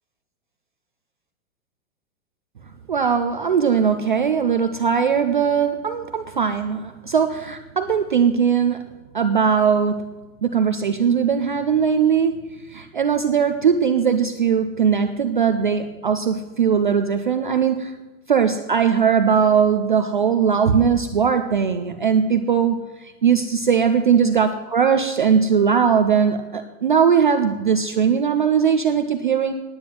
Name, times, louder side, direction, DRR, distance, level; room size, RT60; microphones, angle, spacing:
voice 1, 2.9-8.9 9.1-10.1 10.4-17.9 18.3-22.8 23.2-29.5, right 7 dB, 35° right, 7 dB, 0.4 m, -19 dB
9.6 x 9.5 x 7.6 m, 1.2 s
hypercardioid pair, 170°, 44 cm